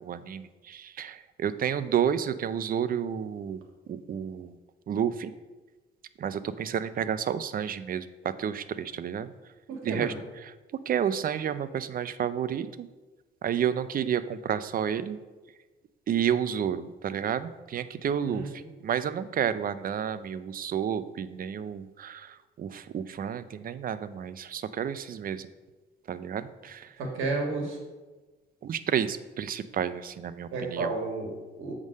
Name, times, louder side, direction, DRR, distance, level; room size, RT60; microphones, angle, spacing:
voice 1, 0.0-3.6 3.9-4.6 4.9-5.3 6.2-9.3 9.8-10.1 10.9-12.9 13.4-15.2 16.1-25.5 26.1-26.9 28.6-30.9, right 8 dB, 45° right, 14 dB, 0.5 m, -30 dB
voice 2, 9.7-10.2 18.2-18.7 27.0-27.8 30.5-31.7, right 3 dB, 90° right, 1 dB, 1.6 m, -32 dB
7.9 x 3.7 x 6.3 m, 1.2 s
cardioid pair, 90°, 20 cm